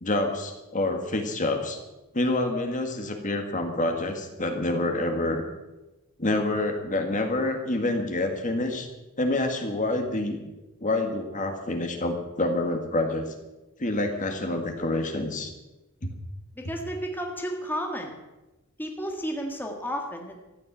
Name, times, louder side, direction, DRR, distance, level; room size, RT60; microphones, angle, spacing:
voice 1, 0.0-1.8 2.1-5.4 6.2-8.9 9.2-10.4 10.8-13.3 13.8-15.5 16.0-16.1, left 2 dB, 35° left, 4 dB, 1.8 m, -27 dB
voice 2, 16.5-18.1 18.8-20.4, equal, 10° left, 2 dB, 1.7 m, -32 dB
14.0 x 9.2 x 9.1 m, 1.0 s
head